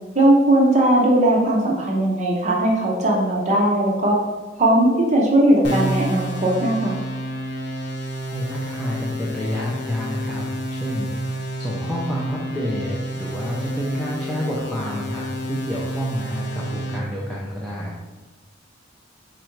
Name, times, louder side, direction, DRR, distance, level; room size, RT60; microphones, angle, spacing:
voice 1, 0.1-4.2 4.6-7.0, right 1 dB, 35° right, -2 dB, 0.7 m, -18 dB
sound 1, 5.6-17.0, right 1 dB, 60° left, 0.6 m, -30 dB
voice 2, 8.3-18.0, equal, ahead, -6 dB, 0.5 m, -29 dB
4.3 x 2.5 x 4.5 m, 1.2 s
head